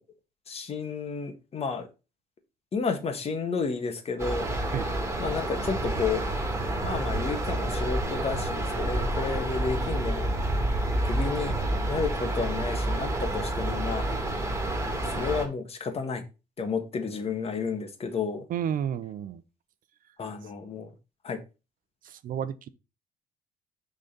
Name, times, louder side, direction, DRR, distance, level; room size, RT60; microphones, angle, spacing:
voice 1, 0.5-1.9 2.7-4.5 5.2-6.3 6.8-10.3 11.0-11.5 11.9-14.1 15.1-16.2 16.6-18.4 20.2-20.9 21.2-21.4, left 5 dB, 35° left, 1.5 m, -31 dB
sound 1, 4.2-15.4, right 1 dB, 15° right, 2.5 m, -29 dB
voice 2, 18.5-19.4 22.0-22.7, right 9 dB, 55° right, 0.7 m, -31 dB
6.4 x 4.0 x 5.1 m
cardioid pair, 110°, 17 cm